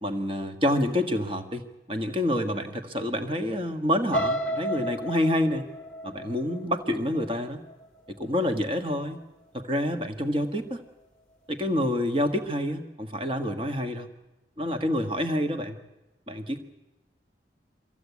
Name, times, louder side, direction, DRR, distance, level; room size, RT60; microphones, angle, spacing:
voice 1, 0.0-5.7 6.0-7.6 8.1-9.2 9.5-10.8 11.5-14.1 14.6-15.8 16.3-16.6, left 1 dB, 30° right, 7 dB, 1.5 m, -27 dB
sound 1, 4.1-8.1 8.6-8.9 9.2-9.3, equal, 5° left, 2.1 m, -33 dB
23.5 x 15.5 x 8.3 m, 1.0 s
head